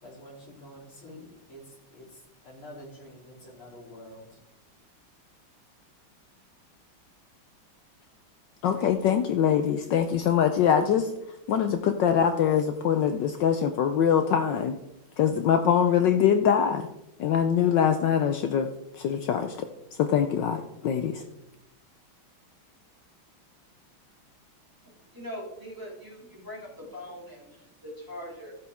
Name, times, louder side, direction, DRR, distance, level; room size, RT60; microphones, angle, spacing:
voice 1, 0.0-4.4, equal, 90° left, -5 dB, 4.2 m, -47 dB
voice 2, 8.6-11.1 11.5-14.8 15.2-16.9 17.2-18.7 18.9-19.6 20.0-21.2, left 8 dB, 70° left, 7 dB, 1.2 m, -23 dB
voice 3, 25.1-28.6, equal, 10° right, -5 dB, 3.1 m, -41 dB
14.5 x 8.0 x 3.5 m, 0.88 s
omnidirectional pair, 2.3 m